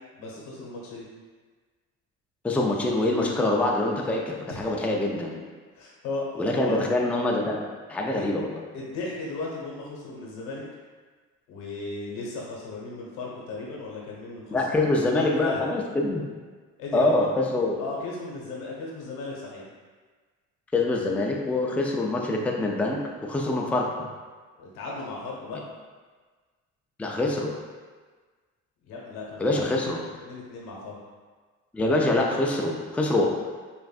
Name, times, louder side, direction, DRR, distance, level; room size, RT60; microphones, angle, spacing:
voice 1, 0.1-1.1 4.5-4.7 5.0-5.4 5.7-6.8 8.1-8.2 8.7-10.6 11.5-15.6 16.8-17.3 17.8-19.6 24.6-25.6 28.9-29.9 30.2-31.0, left 3 dB, 85° left, -3 dB, 1.2 m, -36 dB
voice 2, 2.4-5.3 6.4-8.5 14.5-16.2 16.9-17.8 20.7-23.9 27.0-27.5 29.4-30.0 31.7-33.3, left 2 dB, 5° left, -1 dB, 0.4 m, -25 dB
5.7 x 2.6 x 2.4 m, 1.4 s
supercardioid pair, 90°, 32 cm